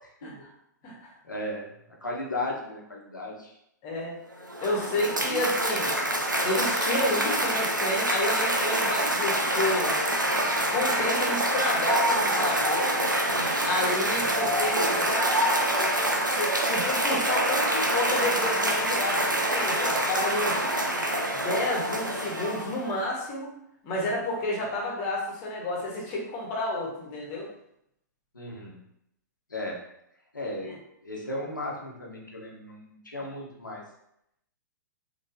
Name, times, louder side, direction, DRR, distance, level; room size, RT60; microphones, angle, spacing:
voice 1, 1.2-1.7 2.0-3.6 5.3-5.4 28.3-28.8 29.5-29.8 30.3-33.8, left 1 dB, 85° left, -2 dB, 1.0 m, -35 dB
voice 2, 3.8-4.2 4.6-5.9 6.4-9.9 10.7-12.9 13.6-20.6 21.3-23.5 23.8-27.5, left 1 dB, 35° left, -2 dB, 1.3 m, -30 dB
Cheering / Applause, 4.3-23.0, right 1 dB, 85° right, 0.6 m, -26 dB
4.0 x 3.1 x 2.7 m, 0.77 s
figure-of-eight pair, 105°, 10 cm